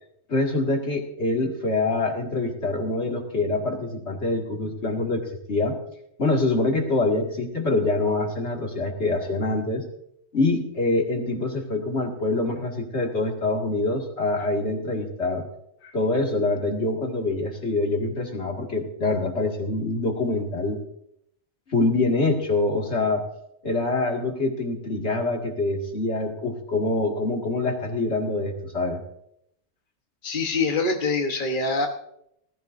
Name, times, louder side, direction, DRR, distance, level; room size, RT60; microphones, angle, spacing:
voice 1, 0.3-5.8 6.2-9.8 10.3-15.5 15.9-20.8 21.7-23.2 23.6-29.0, left 2 dB, 70° left, 1 dB, 2.4 m, -25 dB
voice 2, 30.2-31.9, left 3 dB, 45° left, 2 dB, 1.3 m, -25 dB
19.5 x 14.0 x 2.6 m, 0.75 s
omnidirectional pair, 1.2 m